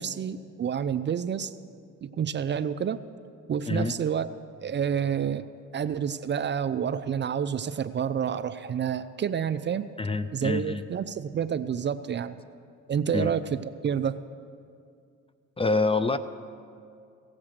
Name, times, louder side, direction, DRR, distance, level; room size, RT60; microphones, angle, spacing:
voice 1, 0.0-1.5 2.0-3.0 3.5-4.3 4.6-5.5 5.7-9.9 10.3-12.4 12.9-13.6 13.8-14.2, right 8 dB, 40° right, 12 dB, 0.4 m, -29 dB
voice 2, 10.0-10.8 13.1-13.3 15.6-16.2, left 3 dB, 20° left, 12 dB, 0.4 m, -26 dB
17.0 x 7.4 x 6.5 m, 2.4 s
cardioid pair, 90°, 30 cm